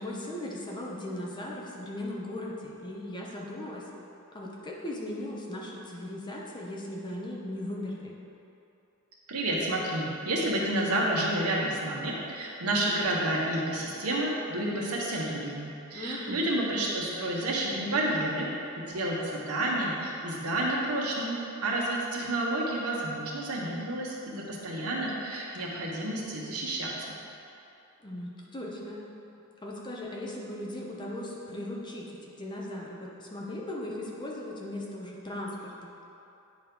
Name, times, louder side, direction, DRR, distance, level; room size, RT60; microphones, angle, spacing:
voice 1, 0.0-3.9 4.3-8.2 15.9-16.4 28.0-29.0 29.6-35.9, left 1 dB, 20° left, -3 dB, 0.8 m, -38 dB
voice 2, 9.3-18.5 18.8-27.2, right 1 dB, 85° right, -3 dB, 1.2 m, -30 dB
9.3 x 3.1 x 5.2 m, 2.8 s
head